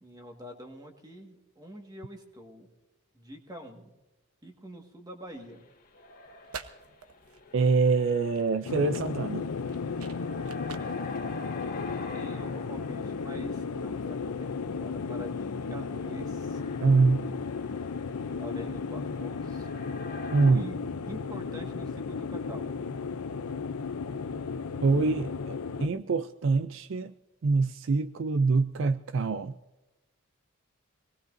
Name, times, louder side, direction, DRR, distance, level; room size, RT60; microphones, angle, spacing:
voice 1, 0.0-2.7 3.1-3.9 4.4-5.6 11.8-16.6 18.4-19.7 20.4-20.8 21.1-22.7, equal, 20° right, 1.6 m, -45 dB
sound 1, 5.3-5.4 5.8-13.9 16.1-20.5, left 3 dB, 40° left, 1.7 m, -45 dB
sound 2, 6.2-12.3, right 6 dB, 85° right, 1.1 m, -48 dB
voice 2, 7.5-9.4 16.8-17.3 20.3-20.7 24.8-25.5 25.8-27.1 27.4-29.5, right 4 dB, 60° right, 0.4 m, -25 dB
sound 3, 8.6-25.9, left 5 dB, 85° left, 0.5 m, -34 dB
24.5 x 19.0 x 2.6 m
head